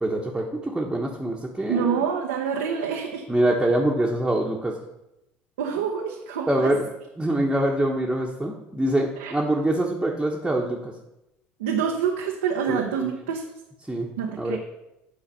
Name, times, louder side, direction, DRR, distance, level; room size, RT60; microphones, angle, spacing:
voice 1, 0.0-2.0 3.3-4.8 6.5-6.9 7.2-10.9 12.7-13.1 13.9-14.1 14.4-14.6, right 1 dB, 10° right, -2 dB, 1.1 m, -24 dB
voice 2, 1.7-3.2 5.6-6.7 9.2-9.3 11.6-13.4 14.2-14.6, right 7 dB, 85° right, 1 dB, 0.7 m, -26 dB
8.6 x 4.0 x 5.4 m, 0.89 s
hypercardioid pair, 75°, 5 cm